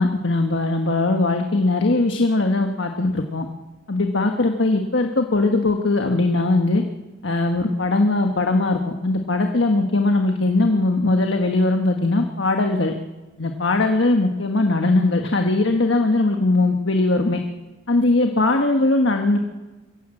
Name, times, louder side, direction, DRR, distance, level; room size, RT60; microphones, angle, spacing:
voice 1, 0.0-3.4 3.9-6.8 7.2-12.9 13.4-17.4 17.9-19.4, left 2 dB, 70° left, 4 dB, 1.4 m, -20 dB
23.5 x 16.0 x 7.8 m, 1.1 s
head